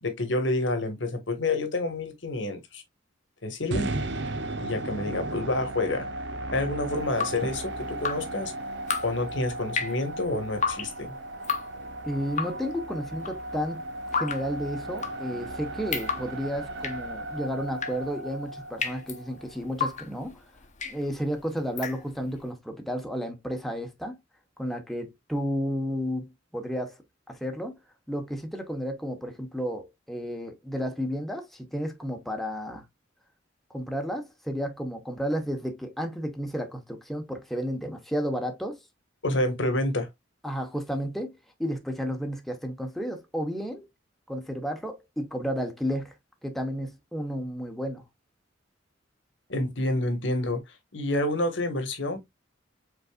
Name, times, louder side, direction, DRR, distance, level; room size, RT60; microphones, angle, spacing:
voice 1, 0.0-2.8 3.4-3.9 4.6-6.1 6.5-8.5 9.0-11.1 39.2-40.1 49.5-50.6 50.9-52.2, left 2 dB, 70° left, 1.4 m, -28 dB
sound 1, 3.7-19.8, right 2 dB, 65° right, 0.6 m, -36 dB
Drip, 7.0-22.4, left 5 dB, 40° left, 0.9 m, -35 dB
voice 2, 12.0-13.9 14.1-20.4 20.8-24.2 24.6-27.0 27.3-27.7 28.1-32.9 33.7-38.8 40.4-43.9 44.3-46.1 46.4-48.0, equal, ahead, 1.0 m, -32 dB
5.2 x 4.0 x 2.3 m
head